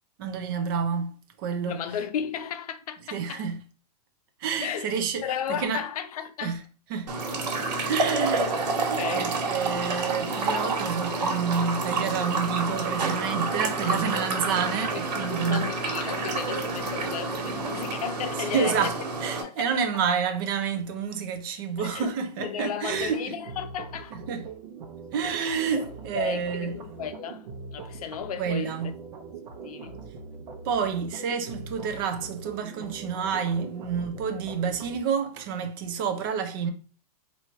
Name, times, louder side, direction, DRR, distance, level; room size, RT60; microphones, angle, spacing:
voice 1, 0.2-1.1 1.4-1.8 3.1-3.6 4.4-5.2 5.6-5.8 6.4-6.6 6.9-7.1 7.9-8.5 9.1-15.7 18.4-19.0 19.2-23.2 24.1-24.5 25.1-26.8 28.4-28.9 30.6-36.7, right 6 dB, 30° right, 0.5 m, -29 dB
voice 2, 1.6-3.4 4.6-4.9 5.2-6.6 8.1-8.3 9.0-9.2 15.2-18.9 19.4-19.7 21.8-24.2 25.3-28.8 29.4-30.1, left 8 dB, 60° left, 0.6 m, -34 dB
sound 1, 7.1-19.4, right 3 dB, 85° right, 1.5 m, -29 dB
sound 2, 22.9-35.0, right 4 dB, 70° right, 1.0 m, -42 dB
3.0 x 2.7 x 4.4 m
supercardioid pair, 170°, 21 cm